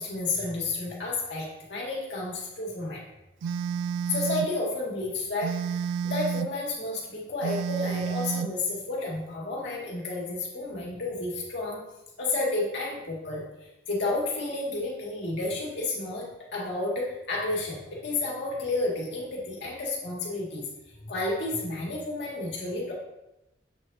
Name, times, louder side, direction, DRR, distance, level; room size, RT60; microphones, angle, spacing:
voice 1, 0.0-3.0 4.1-11.8 12.2-13.4 13.9-20.7 21.0-22.9, left 2 dB, 65° left, -4 dB, 2.3 m, -31 dB
Telephone, 3.4-4.6 5.4-6.6 7.4-8.6, right 7 dB, 85° right, 0.3 m, -30 dB
8.1 x 6.5 x 2.8 m, 0.92 s
head